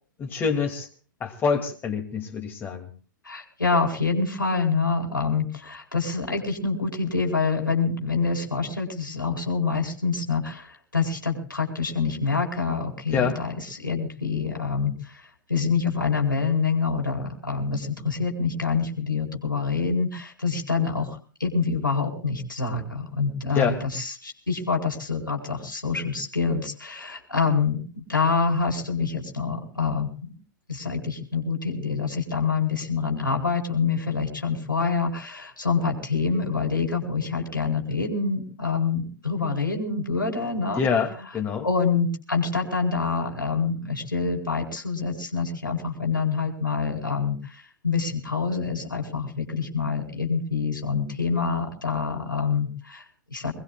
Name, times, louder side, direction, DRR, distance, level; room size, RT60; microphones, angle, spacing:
voice 1, 0.2-0.9 1.2-2.9 13.1-13.4 23.5-23.8 40.8-41.7, left 6 dB, 20° left, 3 dB, 2.5 m, -26 dB
voice 2, 3.2-30.3 30.7-40.8 41.6-53.5, left 5 dB, 85° left, 1 dB, 4.6 m, -26 dB
24.5 x 20.5 x 2.4 m, 0.40 s
figure-of-eight pair, 110°, 11 cm